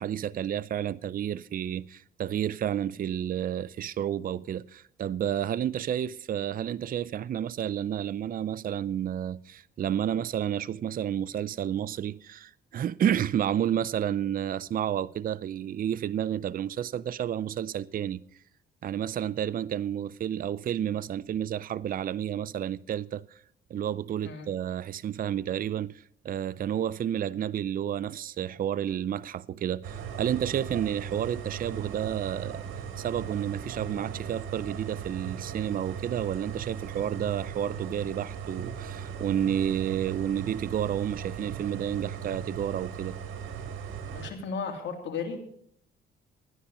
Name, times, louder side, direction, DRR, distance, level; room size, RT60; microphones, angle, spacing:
voice 1, 0.0-18.2 18.8-23.2 23.7-32.7 33.0-43.2, right 10 dB, 45° right, 0.5 m, -30 dB
sound 1, 29.8-44.3, right 7 dB, 90° right, 1.7 m, -38 dB
voice 2, 44.1-45.4, left 5 dB, 65° left, 3.0 m, -34 dB
13.0 x 10.0 x 5.5 m
cardioid pair, 90°, 20 cm